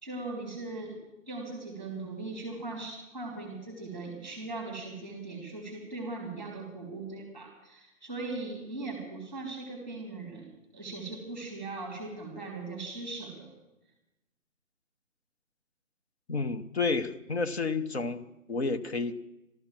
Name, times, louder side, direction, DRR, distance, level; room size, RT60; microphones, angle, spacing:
voice 1, 0.0-1.0 1.3-10.5 10.7-13.5, right 3 dB, 5° left, 1 dB, 2.8 m, -39 dB
voice 2, 16.3-19.2, left 4 dB, 50° left, 10 dB, 0.8 m, -31 dB
13.0 x 13.0 x 7.3 m, 0.96 s
hypercardioid pair, 165°, 41 cm